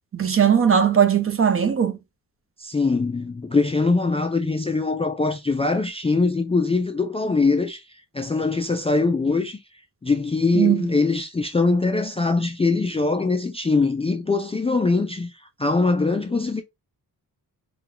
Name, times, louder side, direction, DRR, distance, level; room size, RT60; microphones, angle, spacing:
voice 1, 0.1-2.0 10.5-10.8, right 8 dB, 35° right, 0.6 m, -19 dB
voice 2, 2.6-7.8 8.1-9.6 10.0-15.3 15.6-16.6, left 3 dB, 15° left, 0.3 m, -22 dB
4.4 x 2.2 x 3.8 m
wide cardioid pair, 170°, 36 cm